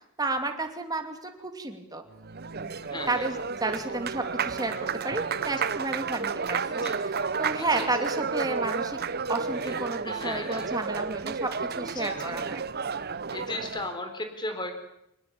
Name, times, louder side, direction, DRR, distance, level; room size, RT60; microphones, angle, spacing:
voice 1, 0.2-2.0 2.6-9.0 9.3-12.6, right 2 dB, 20° right, 5 dB, 2.7 m, -32 dB
Applause, 2.1-14.0, right 5 dB, 45° right, 0.8 m, -32 dB
voice 2, 2.8-3.3 3.7-3.9 5.6-5.7 6.7-7.0 7.6-7.9 9.6-9.7 10.0-10.7 11.8-12.3 13.3-14.8, left 2 dB, 20° left, 7 dB, 4.1 m, -36 dB
24.0 x 20.0 x 8.6 m, 0.80 s
head